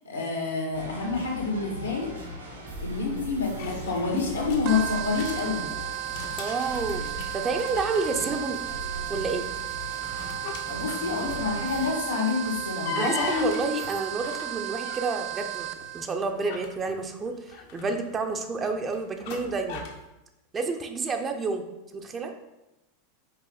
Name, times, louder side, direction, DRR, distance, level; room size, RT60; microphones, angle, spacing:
voice 1, 0.0-2.1 2.8-5.7 10.7-13.5, left 4 dB, 80° left, -1 dB, 1.8 m, -28 dB
sound 1, 0.7-11.9, right 1 dB, 90° right, 2.3 m, -39 dB
sound 2, 3.6-5.4 5.9-8.6 8.9-9.3 9.8-11.6 12.3-15.2 15.8-20.0, left 6 dB, 55° left, 0.9 m, -40 dB
sound 3, 4.7-16.1, right 14 dB, 50° right, 0.4 m, -34 dB
voice 2, 6.4-8.6 9.1-9.5 13.0-19.8 20.5-22.3, right 4 dB, 25° right, 5 dB, 0.7 m, -30 dB
5.5 x 4.7 x 4.0 m, 0.97 s
figure-of-eight pair, 85°, 0 cm